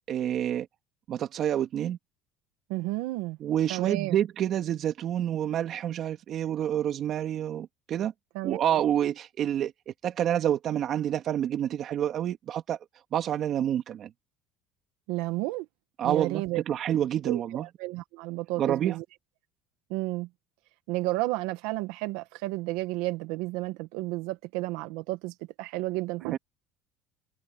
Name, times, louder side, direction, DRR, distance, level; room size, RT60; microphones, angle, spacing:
voice 1, 0.1-0.7 1.1-2.0 3.4-8.1 8.4-12.8 13.1-14.1 16.0-17.7 18.6-19.0 26.3-26.4, right 10 dB, 45° right, 2.3 m, -28 dB
voice 2, 2.7-3.4 3.7-4.2 8.3-8.8 15.1-15.7 16.0-16.6 17.2-19.0 19.9-20.3 20.9-26.4, right 20 dB, 80° right, 1.4 m, -32 dB
supercardioid pair, 120°, 0 cm